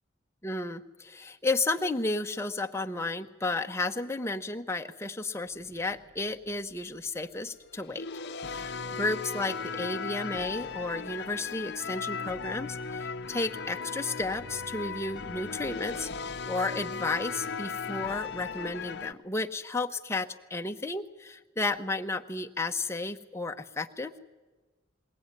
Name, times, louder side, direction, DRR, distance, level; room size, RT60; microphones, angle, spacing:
voice 1, 0.4-8.1 8.5-8.7 9.0-16.1 16.5-24.2, left 2 dB, 15° left, 6 dB, 0.8 m, -33 dB
sound 1, 5.6-6.8 7.6-19.1, left 5 dB, 60° left, 0.6 m, -37 dB
21.0 x 18.0 x 9.7 m, 1.3 s
head